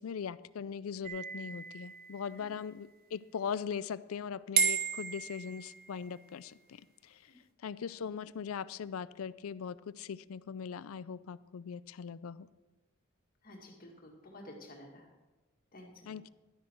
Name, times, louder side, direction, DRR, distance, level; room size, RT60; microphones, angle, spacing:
voice 1, 0.0-7.3 7.6-12.5 16.1-16.3, left 7 dB, 85° left, 17 dB, 0.4 m, -40 dB
sound 1, 1.0-2.6 4.6-6.1, right 5 dB, 45° right, 1.4 m, -34 dB
voice 2, 13.4-15.1 15.7-16.2, left 1 dB, 45° left, 0 dB, 2.0 m, -51 dB
12.0 x 10.5 x 4.5 m, 1.2 s
head